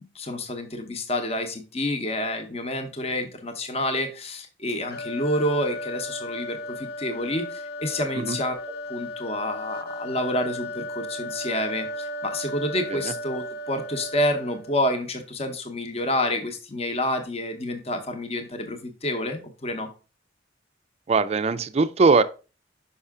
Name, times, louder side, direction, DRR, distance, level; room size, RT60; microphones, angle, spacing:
voice 1, 0.1-8.6 8.9-19.9, left 1 dB, 35° left, 0.9 m, -28 dB
sound 1, 4.9-14.8, left 1 dB, 55° left, 0.5 m, -35 dB
voice 2, 21.1-22.2, right 4 dB, 35° right, 0.4 m, -21 dB
5.6 x 5.5 x 3.6 m
head